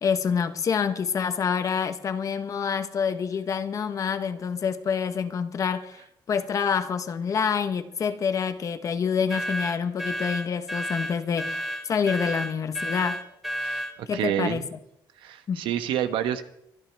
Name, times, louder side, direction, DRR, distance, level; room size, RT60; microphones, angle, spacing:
voice 1, 0.0-6.0 6.3-13.2 14.1-14.8 15.5-15.7, left 6 dB, 40° left, 1.0 m, -27 dB
sound 1, 9.3-14.0, equal, ahead, 1.8 m, -31 dB
voice 2, 13.6-14.7 15.2-16.4, right 10 dB, 85° right, 1.1 m, -28 dB
24.5 x 12.0 x 3.4 m
cardioid pair, 135°, 8 cm